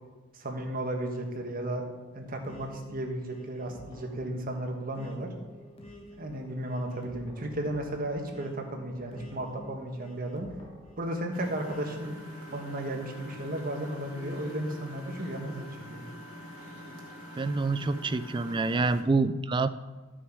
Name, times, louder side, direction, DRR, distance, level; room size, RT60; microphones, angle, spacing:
voice 1, 0.3-1.8 2.1-5.3 6.1-10.5 11.0-12.1 12.5-16.0, right 1 dB, 40° right, 3 dB, 1.4 m, -34 dB
sound 1, 2.4-13.5 14.1-15.7, left 1 dB, 25° left, 1.1 m, -50 dB
Engine, 11.3-19.0, equal, 85° right, 2.3 m, -46 dB
voice 2, 17.4-19.7, right 3 dB, 20° right, 13 dB, 0.3 m, -27 dB
12.5 x 6.3 x 4.7 m, 1.3 s
head